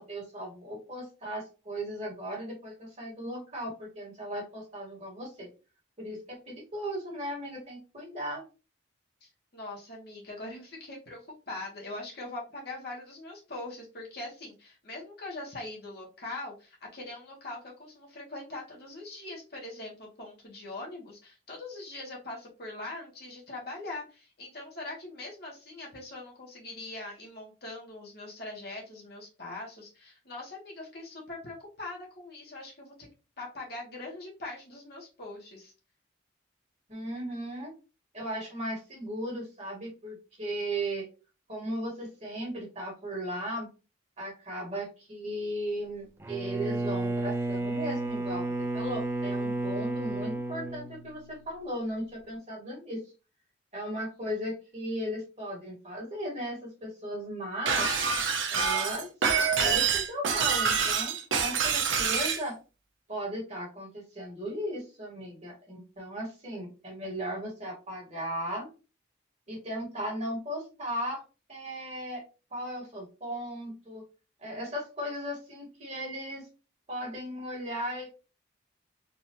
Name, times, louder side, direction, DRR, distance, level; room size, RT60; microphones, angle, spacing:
voice 1, 0.0-5.5 6.0-8.4 36.9-37.7 38.1-41.1 41.5-43.7 44.2-53.0 53.7-57.9 58.5-59.1 59.3-62.6 63.1-68.7 69.5-71.2 71.5-72.2 72.5-74.1 74.4-76.4 76.9-78.1, equal, 35° right, -2 dB, 1.8 m, -36 dB
voice 2, 9.2-33.1 33.4-35.7, left 2 dB, 50° left, -3 dB, 1.4 m, -42 dB
Bowed string instrument, 46.2-51.5, right 2 dB, 10° right, 0.4 m, -32 dB
Shatter, 57.7-62.4, right 6 dB, 75° right, 0.7 m, -26 dB
4.0 x 2.7 x 3.0 m, 0.32 s
head